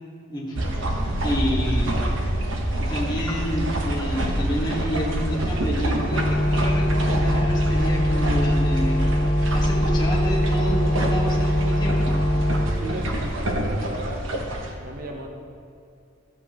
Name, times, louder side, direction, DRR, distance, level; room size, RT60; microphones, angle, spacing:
sound 1, 0.5-14.7, right 1 dB, 75° right, 1.0 m, -27 dB
voice 1, 1.2-2.1 2.8-9.0 9.3-12.2, equal, 20° left, -4 dB, 1.3 m, -29 dB
sound 2, 6.1-12.7, equal, 40° left, 1.1 m, -22 dB
voice 2, 12.8-14.3 14.8-15.3, right 1 dB, 45° right, 2 dB, 0.8 m, -35 dB
13.0 x 7.8 x 2.9 m, 2.6 s
head